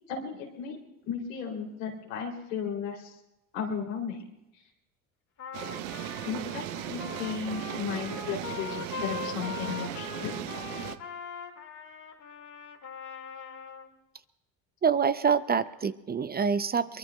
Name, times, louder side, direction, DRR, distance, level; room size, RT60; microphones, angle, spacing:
voice 1, 0.1-0.8 1.1-3.2 3.5-4.2 6.2-10.4, left 6 dB, 90° left, -1 dB, 3.2 m, -35 dB
Trumpet, 5.4-13.9, left 6 dB, 50° left, 2.0 m, -41 dB
sound 1, 5.5-11.0, right 12 dB, 85° right, 0.8 m, -37 dB
voice 2, 14.8-17.0, right 6 dB, 25° right, 14 dB, 0.5 m, -26 dB
23.0 x 23.0 x 2.3 m, 0.90 s
hypercardioid pair, 65°, 38 cm